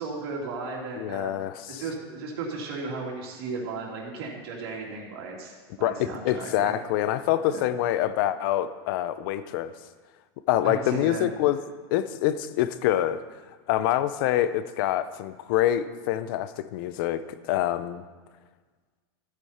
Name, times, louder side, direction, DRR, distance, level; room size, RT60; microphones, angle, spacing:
voice 1, 0.0-1.3 1.7-6.8 7.5-7.6 10.6-11.3, right 4 dB, 70° right, -2 dB, 2.8 m, -35 dB
voice 2, 1.0-1.8 5.8-9.7 10.5-11.6 11.9-13.2 13.7-17.2 17.5-18.0, left 12 dB, 55° left, 13 dB, 0.6 m, -26 dB
14.0 x 8.5 x 4.3 m, 1.4 s
supercardioid pair, 165°, 13 cm